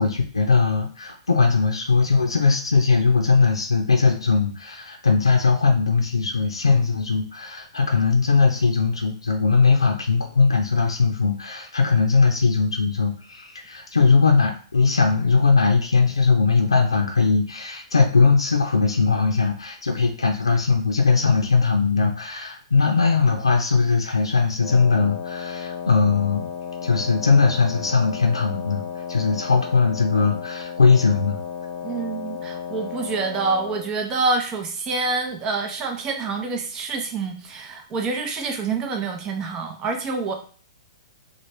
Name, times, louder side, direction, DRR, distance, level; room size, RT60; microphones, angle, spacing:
voice 1, 0.0-26.5 26.8-28.8 29.1-31.4, left 4 dB, 85° left, 1 dB, 0.5 m, -19 dB
Wind instrument woodwind instrument, 24.6-33.9, left 7 dB, 35° left, 0.8 m, -34 dB
voice 2, 31.8-40.3, right 4 dB, 25° right, 3 dB, 0.7 m, -27 dB
3.2 x 2.2 x 3.1 m, 0.43 s
figure-of-eight pair, 115°, 3 cm